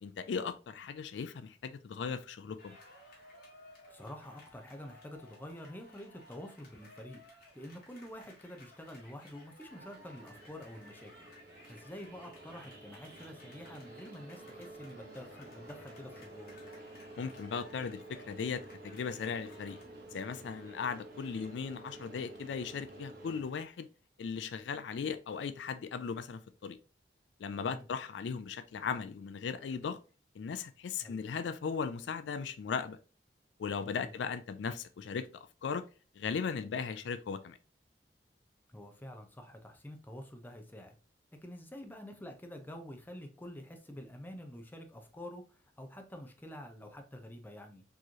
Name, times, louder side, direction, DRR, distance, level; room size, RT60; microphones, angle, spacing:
voice 1, 0.0-2.8 17.2-19.8 20.1-23.9 24.2-26.8 27.4-30.0 30.4-33.0 33.6-35.3 35.6-35.8 36.2-37.6, left 6 dB, 75° left, 0.4 m, -37 dB
sound 1, 2.6-19.9, left 1 dB, 55° left, 1.8 m, -58 dB
voice 2, 3.9-7.2 7.5-11.3 11.7-16.6 27.7-27.9 31.0-31.2 34.0-34.1 38.7-41.0 41.4-47.8, left 1 dB, 10° left, 0.6 m, -48 dB
sound 2, 9.7-23.4, right 2 dB, 60° right, 1.1 m, -51 dB
4.6 x 3.0 x 2.8 m
head